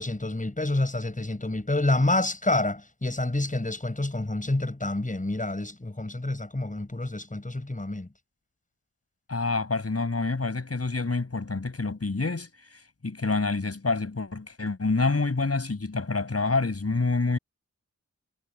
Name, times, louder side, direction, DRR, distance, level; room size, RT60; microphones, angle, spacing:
voice 1, 0.0-8.1, left 2 dB, 25° left, 6.8 m, -28 dB
voice 2, 9.3-17.4, left 3 dB, 50° left, 7.0 m, -27 dB
wide cardioid pair, 85°, 30 cm